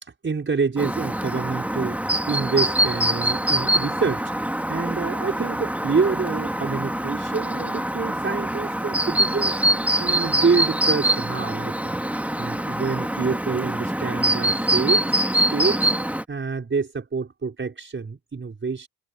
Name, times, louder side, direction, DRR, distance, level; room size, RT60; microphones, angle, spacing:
voice 1, 0.0-4.2 4.7-9.6 10.0-12.0 12.4-15.2 15.5-18.9, right 5 dB, 30° right, 5.7 m, -27 dB
Chirp tweet, 0.8-16.2, right 1 dB, 5° right, 3.3 m, -24 dB
figure-of-eight pair, 50°, 40 cm